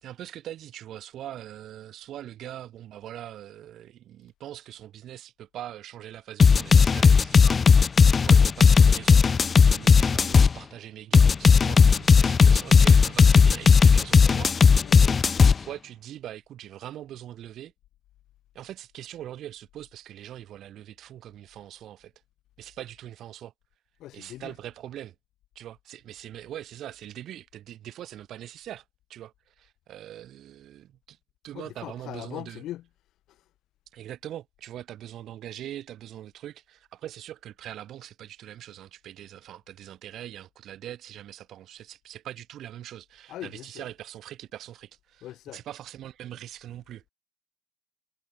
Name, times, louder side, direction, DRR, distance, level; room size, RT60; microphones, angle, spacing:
voice 1, 0.0-7.9 8.2-9.2 9.5-14.5 15.6-17.7 18.5-22.1 22.6-23.5 24.1-25.1 25.5-28.8 29.1-31.2 31.4-32.6 33.9-45.3 45.5-47.0, right 12 dB, 50° right, 3.0 m, -42 dB
sound 1, 6.4-10.5 11.1-15.5, left 5 dB, 30° left, 0.6 m, -16 dB
voice 2, 14.8-15.2 24.0-24.5 31.5-32.9 33.3-33.4 43.3-43.9 45.2-45.6, left 14 dB, 55° left, 3.0 m, -40 dB
hypercardioid pair, 80°, 0 cm